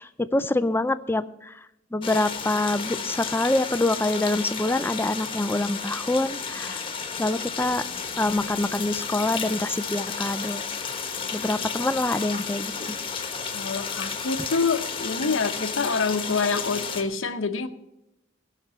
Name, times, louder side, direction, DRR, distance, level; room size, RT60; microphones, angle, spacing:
voice 1, 0.0-1.6 1.9-6.8 7.2-7.9 8.2-10.6 11.3-13.0, left 2 dB, 10° left, 14 dB, 0.4 m, -26 dB
sound 1, 2.0-17.0, left 5 dB, 25° left, 1.3 m, -32 dB
voice 2, 13.5-17.7, left 4 dB, 70° left, 9 dB, 0.9 m, -26 dB
17.0 x 6.0 x 6.9 m, 0.87 s
head